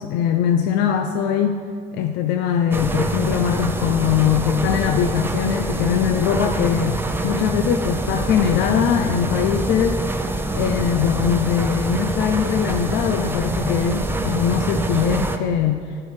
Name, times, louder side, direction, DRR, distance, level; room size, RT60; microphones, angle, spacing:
voice 1, 0.0-1.6 1.9-10.0 10.5-16.0, left 8 dB, 90° left, 5 dB, 0.6 m, -21 dB
sound 1, 2.7-15.4, right 2 dB, 15° right, 0.7 m, -25 dB
13.0 x 4.6 x 6.5 m, 2.1 s
cardioid pair, 110°, 17 cm